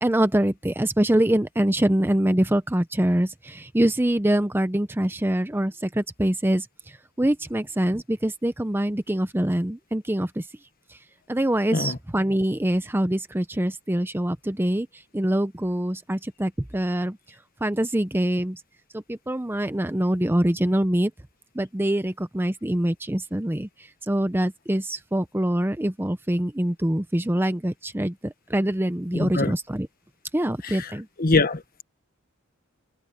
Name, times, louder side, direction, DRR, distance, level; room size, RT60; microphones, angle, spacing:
voice 1, 0.0-10.5 10.9-11.0 11.3-14.9 15.1-17.2 17.6-18.6 18.9-21.1 21.5-29.9 30.3-31.1, right 1 dB, 10° right, 0.7 m, -24 dB
voice 2, 29.1-29.5 30.6-30.9 31.2-31.8, left 3 dB, 45° left, 1.4 m, -24 dB
head